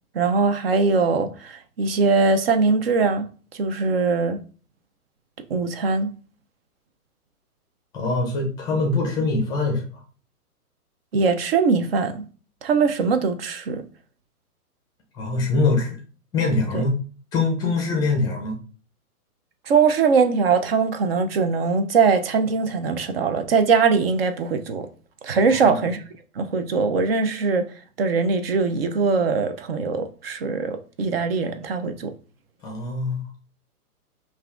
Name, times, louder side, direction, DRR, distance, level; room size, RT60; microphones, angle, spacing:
voice 1, 0.1-3.3 3.6-4.4 5.5-6.1 11.1-12.2 12.6-13.8 16.7-16.8 19.7-24.9 25.2-26.0 26.4-27.7 28.0-32.1, right 4 dB, 40° right, 0.5 m, -21 dB
voice 2, 7.9-10.0 15.1-16.0 16.3-17.0 17.3-18.6 25.5-25.8 32.6-33.2, left 3 dB, 10° left, 0.5 m, -23 dB
5.3 x 2.4 x 2.4 m
hypercardioid pair, 130°, 46 cm